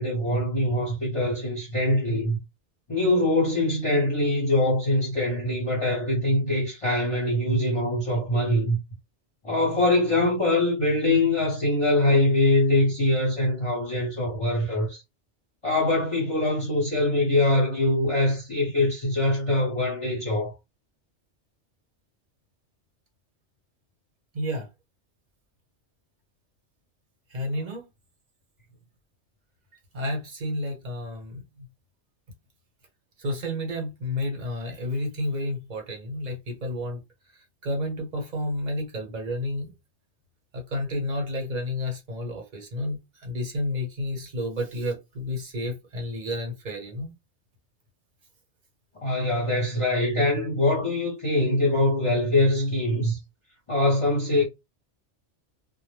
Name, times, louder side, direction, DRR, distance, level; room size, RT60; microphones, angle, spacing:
voice 1, 0.0-2.4 2.9-8.8 9.4-15.0 15.6-20.5 49.0-53.2 53.7-54.4, left 1 dB, 30° left, 0.9 m, -23 dB
voice 2, 24.3-24.7 27.3-27.8 29.9-31.7 33.2-37.0 37.6-39.7 40.5-47.1, left 1 dB, 40° right, 1.0 m, -31 dB
2.1 x 2.1 x 3.2 m
omnidirectional pair, 1.2 m